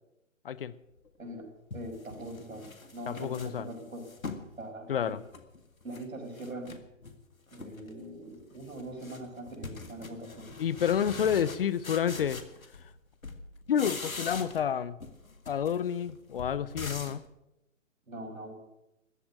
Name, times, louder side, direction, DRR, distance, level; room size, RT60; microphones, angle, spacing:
sound 1, 1.1-1.2 1.7-4.5 4.9-6.1 6.3-7.2 7.5-7.9 8.2-13.0 13.2-14.7 15.0-17.3, left 4 dB, 90° left, 1.9 m, -43 dB
voice 1, 1.7-2.7 2.9-4.1 4.6-5.2 5.8-6.8 7.5-10.5 18.1-18.5, right 1 dB, 80° right, 5.8 m, -42 dB
voice 2, 3.1-3.7 4.9-5.2 10.6-12.4 13.7-15.0 15.5-17.2, left 8 dB, 45° left, 0.7 m, -29 dB
14.0 x 8.6 x 9.9 m
figure-of-eight pair, 135°, 40 cm